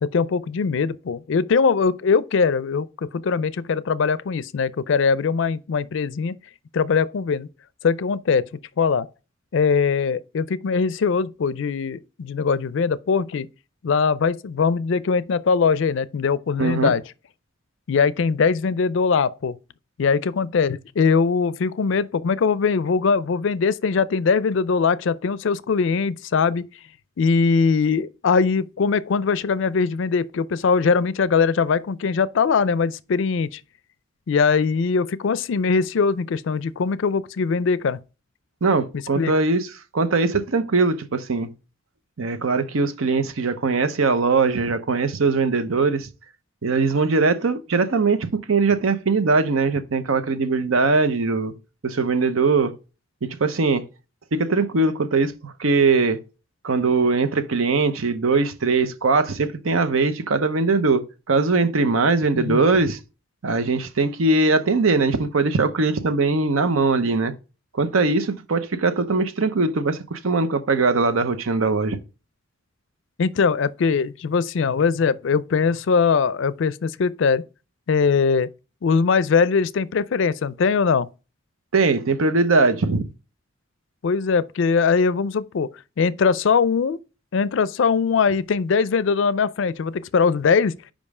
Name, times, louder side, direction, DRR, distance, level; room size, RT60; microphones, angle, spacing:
voice 1, 0.0-6.4 6.7-7.5 7.8-8.4 8.8-9.1 9.5-13.5 13.8-17.0 17.9-19.6 20.0-26.7 27.2-33.6 34.3-38.0 39.2-39.3 62.3-62.6 73.2-77.4 77.9-78.5 78.8-81.1 84.0-85.7 86.0-87.0 87.3-90.8, left 5 dB, 65° left, 0.4 m, -21 dB
voice 2, 16.6-16.9 38.6-39.7 39.9-41.5 42.2-46.1 46.6-51.5 51.8-52.7 53.2-53.8 54.3-56.2 56.6-61.0 61.3-63.0 63.4-67.3 67.8-72.0 81.7-83.0, right 3 dB, 90° right, 0.8 m, -21 dB
5.3 x 5.1 x 4.8 m
head